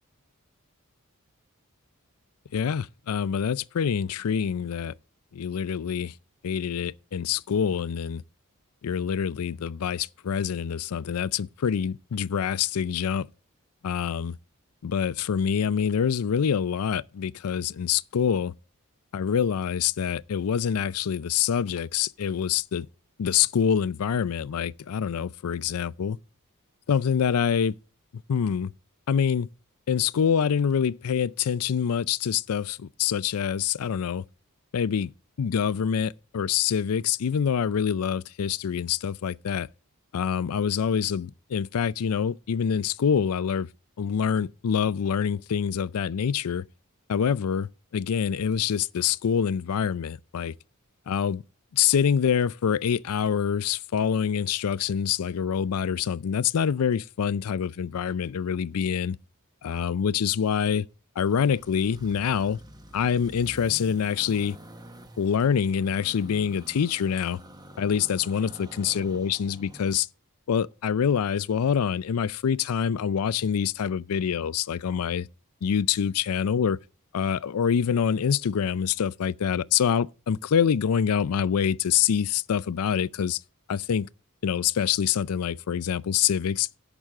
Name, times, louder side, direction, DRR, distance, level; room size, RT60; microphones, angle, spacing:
voice 1, 2.5-4.9 5.3-6.1 6.4-8.2 8.8-13.3 13.8-14.4 14.8-18.5 19.1-22.9 23.2-26.2 26.9-27.8 28.3-28.7 29.1-29.5 29.9-34.2 34.7-35.1 35.4-39.7 40.1-43.7 44.0-46.6 47.1-50.5 51.1-51.4 51.7-59.2 59.6-60.9 61.2-62.6 62.9-64.6 65.2-67.4 67.8-70.1 70.5-75.3 75.6-76.8 77.1-83.4 83.7-84.1 84.4-86.7, left 7 dB, 80° left, 0.4 m, -26 dB
sound 1, 61.2-69.9, equal, 20° right, 1.0 m, -47 dB
16.5 x 6.1 x 3.6 m
head